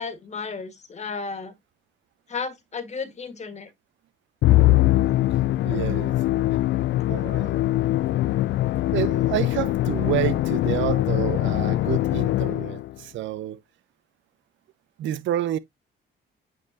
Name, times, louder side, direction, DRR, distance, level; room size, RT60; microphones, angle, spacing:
voice 1, 0.0-1.5 2.3-3.7, left 5 dB, 35° left, 1.6 m, -33 dB
Musical instrument, 4.4-12.9, left 15 dB, 65° left, 0.4 m, -22 dB
voice 2, 5.6-6.4 7.1-7.6 8.9-13.6 15.0-15.6, right 13 dB, 75° right, 0.7 m, -29 dB
8.8 x 4.0 x 2.7 m
cardioid pair, 100°, 20 cm